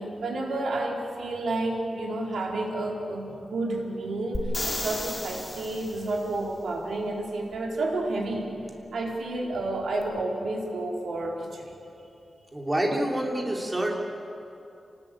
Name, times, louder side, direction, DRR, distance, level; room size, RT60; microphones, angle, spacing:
voice 1, 0.0-8.5 8.9-11.7, right 2 dB, 85° right, -1 dB, 4.5 m, -30 dB
sound 1, 4.3-6.2 10.0-10.1, left 1 dB, 15° left, 3.9 m, -33 dB
voice 2, 12.5-14.0, right 1 dB, 15° right, 0 dB, 3.5 m, -27 dB
27.5 x 19.5 x 8.7 m, 2.7 s
wide cardioid pair, 155°, 0 cm